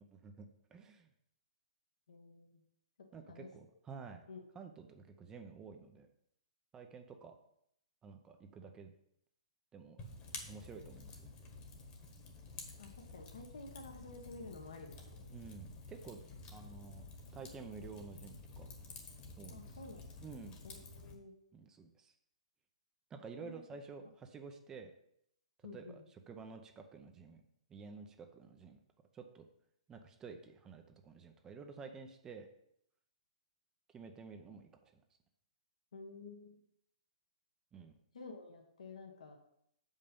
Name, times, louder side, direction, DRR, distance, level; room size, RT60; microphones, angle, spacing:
voice 1, 0.1-1.1 3.1-4.2 4.5-6.1 6.7-7.4 8.0-8.9 9.7-10.0 10.5-11.3 15.3-16.2 16.5-18.7 19.4-19.7 20.2-20.6 21.5-22.1 23.1-24.9 25.7-27.4 27.7-28.8 29.1-29.4 29.9-32.5 33.9-34.7 37.7-37.9, right 5 dB, 15° right, 5 dB, 0.7 m, -51 dB
voice 2, 2.1-2.6 3.3-3.5 4.3-4.4 12.8-15.3 19.5-20.1 20.6-21.3 23.4-23.6 25.6-26.0 35.9-36.6 38.1-39.4, left 3 dB, 75° left, 2 dB, 1.4 m, -51 dB
Fire, 10.0-21.1, left 3 dB, 30° left, 1.4 m, -51 dB
6.5 x 5.4 x 5.3 m, 0.73 s
hypercardioid pair, 135°, 4 cm